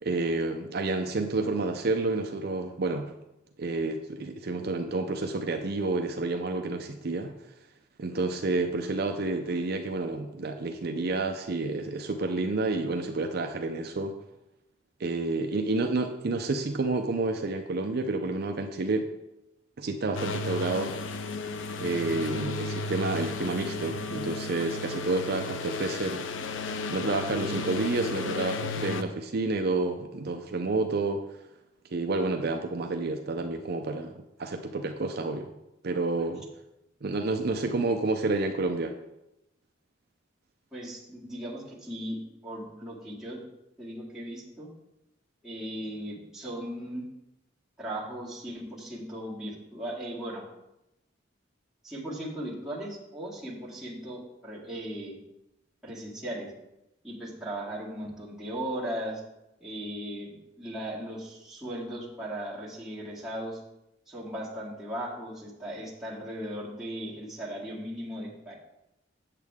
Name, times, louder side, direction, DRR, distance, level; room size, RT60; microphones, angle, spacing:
voice 1, 0.0-3.1 3.6-7.3 8.0-14.1 15.0-19.1 19.8-20.9 21.8-26.2 26.9-31.2 31.9-34.1 34.4-35.5 35.8-36.5 37.0-39.0, right 3 dB, 55° right, 5 dB, 0.5 m, -29 dB
sound 1, 20.1-29.0, left 3 dB, 85° left, 0.6 m, -34 dB
voice 2, 40.7-42.2 42.4-43.4 43.8-44.7 45.4-47.0 47.8-50.4 51.8-55.2 55.8-56.5 57.0-59.2 59.6-63.6 64.1-68.6, right 1 dB, 5° right, -8 dB, 2.2 m, -37 dB
8.3 x 7.4 x 3.6 m, 0.89 s
head